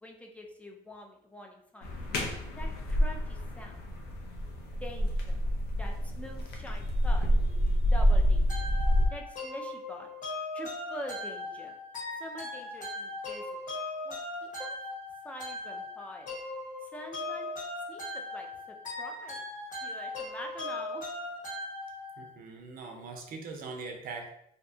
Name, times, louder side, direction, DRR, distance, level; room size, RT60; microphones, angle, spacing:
voice 1, 0.0-1.9 2.6-4.0 4.8-5.4 5.8-7.3 7.7-8.7 9.1-10.1 10.5-11.7 12.1-13.4 14.0-14.8 15.2-16.4 16.8-17.5 17.9-19.4 19.8-21.1, left 1 dB, 10° left, 2 dB, 0.4 m, -45 dB
sound 1, 1.8-9.1, equal, 75° left, 0.6 m, -28 dB
sound 2, 8.5-22.3, left 2 dB, 50° left, 1.2 m, -39 dB
voice 2, 22.2-24.3, right 4 dB, 60° right, 3 dB, 0.5 m, -41 dB
2.7 x 2.1 x 2.6 m, 0.74 s
cardioid pair, 110°, 17 cm